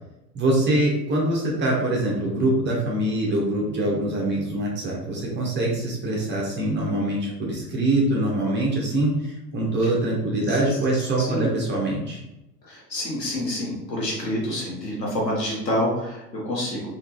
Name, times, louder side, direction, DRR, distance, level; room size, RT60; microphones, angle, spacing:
voice 1, 0.3-12.2, right 1 dB, 20° right, -3 dB, 1.0 m, -24 dB
voice 2, 11.2-11.5 12.6-16.8, left 1 dB, 85° left, -4 dB, 1.1 m, -27 dB
3.5 x 2.8 x 3.0 m, 0.93 s
figure-of-eight pair, 80°, 48 cm